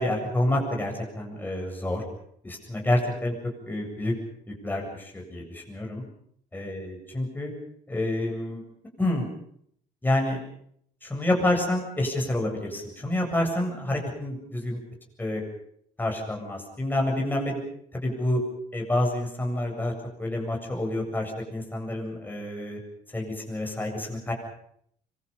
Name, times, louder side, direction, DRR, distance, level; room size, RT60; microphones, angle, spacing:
voice 1, 0.0-2.0 2.4-3.3 3.6-4.1 4.5-6.0 6.5-7.5 7.9-8.6 9.0-9.3 10.0-10.4 11.0-14.8 15.2-15.4 16.0-17.6 17.9-18.4 18.7-19.9 20.2-22.8 23.1-24.3, left 1 dB, 10° left, 0 dB, 7.8 m, -28 dB
26.0 x 23.5 x 5.6 m, 0.67 s
cardioid pair, 110°, 17 cm